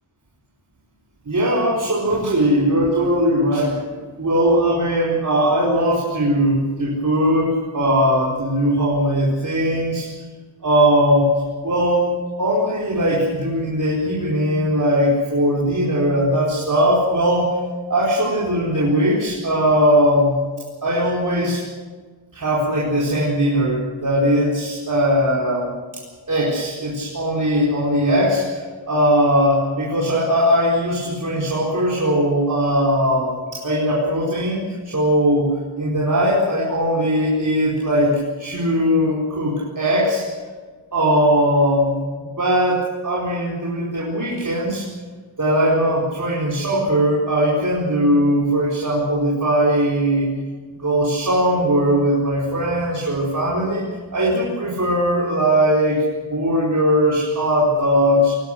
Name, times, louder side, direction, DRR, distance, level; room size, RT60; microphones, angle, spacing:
voice 1, 1.3-3.8 4.2-10.1 10.6-11.3 11.6-12.1 12.4-17.5 17.9-20.4 20.8-21.6 22.3-25.7 25.9-26.0 26.3-35.5 35.8-40.3 40.9-41.9 42.2-44.9 45.4-50.3 50.7-53.8 54.1-56.0 56.3-58.4, equal, 40° right, -5 dB, 4.5 m, -19 dB
22.5 x 18.5 x 7.6 m, 1.5 s
wide cardioid pair, 155°, 50 cm